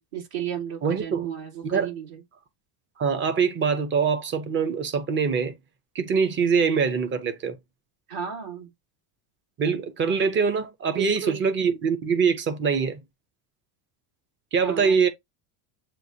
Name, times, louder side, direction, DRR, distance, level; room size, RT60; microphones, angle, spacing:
voice 1, 0.0-2.2 8.1-8.7 10.9-11.4 14.6-15.0, right 9 dB, 50° right, 2.8 m, -33 dB
voice 2, 0.8-1.3 1.6-1.9 3.0-5.5 5.9-7.6 9.6-13.0 14.5-15.1, right 6 dB, 25° right, 0.6 m, -23 dB
7.4 x 2.5 x 2.7 m
cardioid pair, 145°, 47 cm